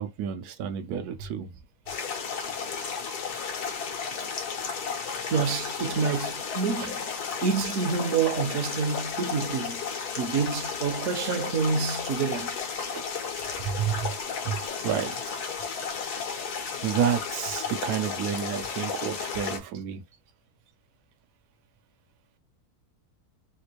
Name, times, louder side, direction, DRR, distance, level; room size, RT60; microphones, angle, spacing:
voice 1, 0.0-1.5 12.9-13.0 13.5-14.2 14.4-15.9 16.8-20.0, right 8 dB, 90° right, 1.1 m, -30 dB
sound 1, 1.9-19.6, left 6 dB, 85° left, 1.4 m, -33 dB
voice 2, 5.3-7.1 7.4-9.8 10.2-12.6, right 5 dB, 65° right, 1.0 m, -28 dB
3.5 x 2.5 x 2.8 m
omnidirectional pair, 1.6 m